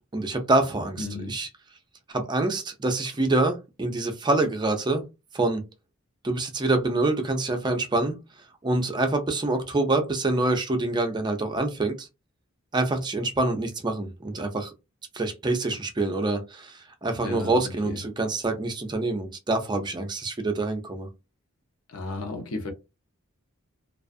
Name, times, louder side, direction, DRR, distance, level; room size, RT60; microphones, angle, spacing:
voice 1, 0.1-1.5 2.1-5.0 5.3-5.7 6.2-8.2 8.6-12.1 12.7-14.7 15.1-21.1, right 2 dB, 20° right, 0.5 m, -26 dB
voice 2, 1.0-1.4 17.2-18.0 21.9-22.7, left 3 dB, 85° left, 0.8 m, -34 dB
2.3 x 2.3 x 2.5 m
head